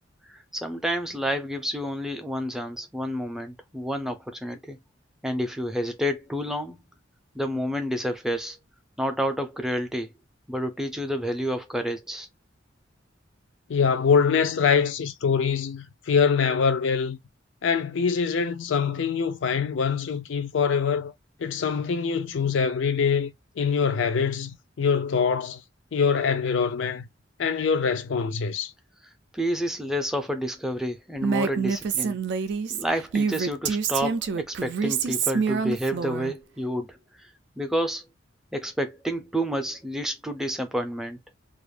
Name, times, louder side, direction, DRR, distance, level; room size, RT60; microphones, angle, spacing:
voice 1, 0.3-4.8 5.2-6.8 7.3-8.6 9.0-10.1 10.5-12.3 29.3-32.2 32.7-37.0 37.6-38.0 38.5-41.2, equal, 5° right, 0.5 m, -29 dB
voice 2, 13.7-17.2 17.6-21.1 21.4-23.3 23.6-25.6 25.9-27.1 27.4-28.7, left 6 dB, 65° left, 0.4 m, -24 dB
Female speech woman speaking, 31.2-36.3, right 5 dB, 60° right, 0.4 m, -27 dB
2.4 x 2.0 x 3.2 m
head